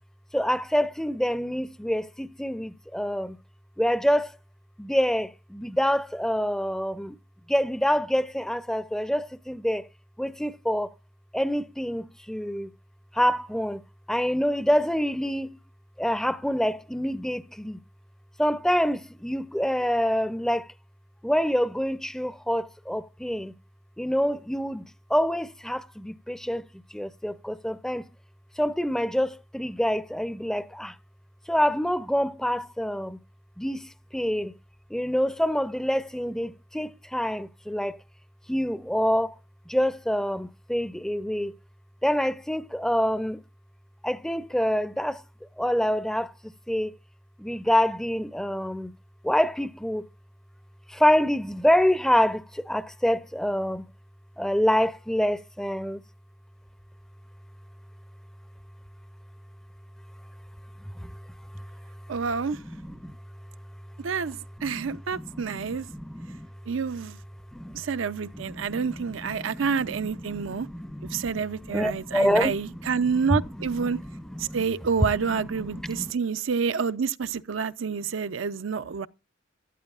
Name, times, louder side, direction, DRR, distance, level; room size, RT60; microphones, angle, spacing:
voice 1, 0.3-3.4 3.8-4.4 4.8-7.2 7.5-9.9 10.2-10.9 11.3-12.7 13.1-13.8 14.1-15.6 16.0-17.8 18.4-20.7 21.2-23.5 24.0-28.1 28.6-31.0 31.5-33.2 33.6-34.6 34.9-38.0 38.5-39.4 39.7-41.6 42.0-43.4 44.0-45.2 45.6-46.9 47.4-48.9 49.2-50.1 50.9-53.8 54.4-56.0 60.8-61.2 61.5-61.7 62.6-63.1 64.6-66.5 67.5-67.8 68.3-74.6 75.3-76.1, equal, 5° left, 0.5 m, -27 dB
voice 2, 62.1-62.6 64.0-65.9 66.7-67.2 67.7-70.7 71.1-74.0 74.4-79.1, right 6 dB, 85° right, 0.5 m, -28 dB
14.0 x 12.0 x 2.4 m
head